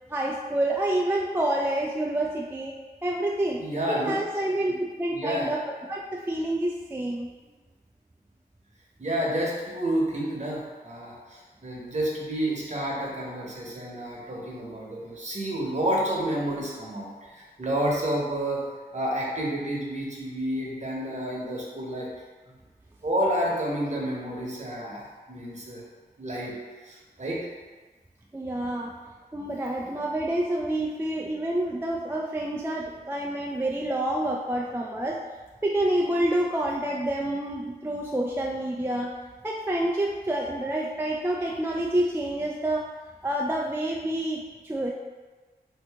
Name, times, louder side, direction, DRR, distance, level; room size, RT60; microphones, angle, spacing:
voice 1, 0.1-2.8 3.0-3.6 3.9-7.3 28.3-28.9 29.3-35.2 35.6-39.1 39.4-42.9 43.2-44.9, right 1 dB, 15° right, -2 dB, 0.3 m, -28 dB
voice 2, 3.6-4.2 5.1-5.5 9.0-18.6 18.9-22.1 23.0-25.8 26.2-26.5 26.9-27.5, right 1 dB, 45° right, -3 dB, 0.9 m, -30 dB
2.8 x 2.6 x 3.4 m, 1.3 s
cardioid pair, 40°, 17 cm